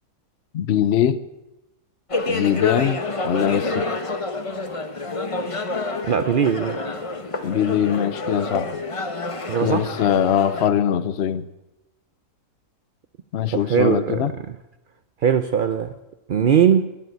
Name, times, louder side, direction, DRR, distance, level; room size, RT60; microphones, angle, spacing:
voice 1, 0.5-1.2 2.3-3.9 7.4-8.8 9.6-11.5 13.3-14.3, left 9 dB, 55° left, 0.7 m, -22 dB
sound 1, 2.1-10.7, left 3 dB, 25° left, 0.9 m, -28 dB
voice 2, 6.0-6.8 9.5-9.9 13.5-14.6 15.2-15.9 16.3-16.9, right 8 dB, 70° right, 0.5 m, -20 dB
12.0 x 11.0 x 9.2 m
omnidirectional pair, 1.7 m